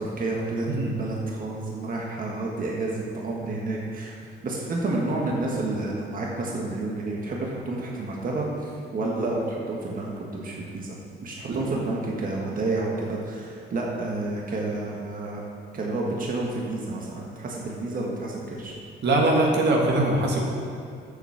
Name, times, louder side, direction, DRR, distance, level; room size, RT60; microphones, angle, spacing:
voice 1, 0.0-4.2 4.4-10.9 11.2-15.4 15.7-18.7, right 2 dB, 45° right, -2 dB, 1.5 m, -30 dB
voice 2, 0.7-1.0 11.5-11.6 19.0-20.4, right 2 dB, 60° right, -1 dB, 1.7 m, -22 dB
8.0 x 6.1 x 7.0 m, 2.4 s
cardioid pair, 90°, 20 cm